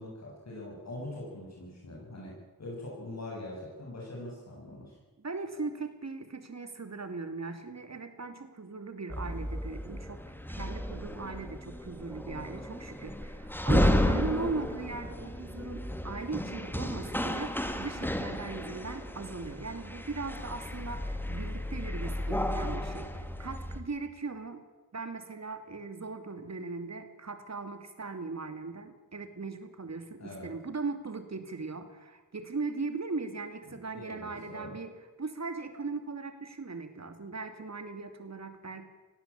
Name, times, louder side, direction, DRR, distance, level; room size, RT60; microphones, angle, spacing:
voice 1, 0.0-5.0 30.2-30.5 33.7-34.7, left 1 dB, 50° left, -4 dB, 7.4 m, -43 dB
voice 2, 5.2-10.2 10.5-24.6 24.9-38.8, right 3 dB, 45° right, 9 dB, 2.8 m, -39 dB
sound 1, 9.1-23.8, left 1 dB, 5° left, 2.2 m, -33 dB
18.5 x 16.5 x 8.7 m, 1.2 s
cardioid pair, 55°, 36 cm